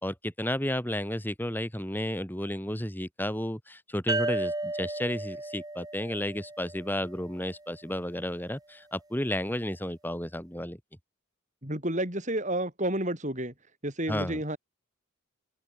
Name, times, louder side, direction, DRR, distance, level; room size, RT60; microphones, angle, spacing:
voice 1, 0.0-10.8 14.1-14.4, left 1 dB, 10° left, 3.3 m, -32 dB
sound 1, 4.1-7.5, right 2 dB, 15° right, 1.6 m, -34 dB
voice 2, 11.6-13.5 13.8-14.6, right 1 dB, 35° right, 7.2 m, -30 dB
head